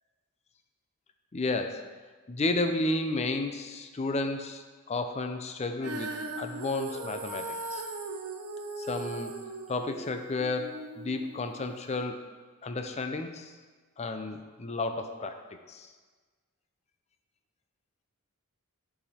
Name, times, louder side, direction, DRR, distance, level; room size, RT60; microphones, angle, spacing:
voice 1, 1.3-1.8 2.3-7.8 8.8-9.3 9.7-12.3 12.6-13.5 14.0-15.4 15.7-15.9, left 2 dB, 30° left, 7 dB, 0.5 m, -32 dB
Female singing, 5.8-12.1, right 3 dB, 75° right, 0.8 m, -39 dB
8.5 x 4.8 x 4.3 m, 1.4 s
head